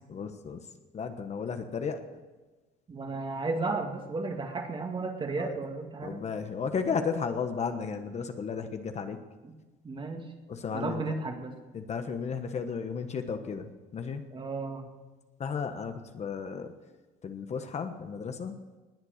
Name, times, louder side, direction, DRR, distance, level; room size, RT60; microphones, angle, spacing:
voice 1, 0.1-0.6 0.9-2.0 5.4-5.6 6.0-9.2 10.5-11.0 11.7-14.2 15.4-16.7 17.2-18.6, left 6 dB, 40° left, 7 dB, 1.3 m, -34 dB
voice 2, 2.9-6.2 9.4-9.6 9.8-10.3 10.7-11.6 14.3-14.9, right 3 dB, 30° right, 4 dB, 2.2 m, -34 dB
20.0 x 8.2 x 6.6 m, 1.2 s
cardioid pair, 110°, 17 cm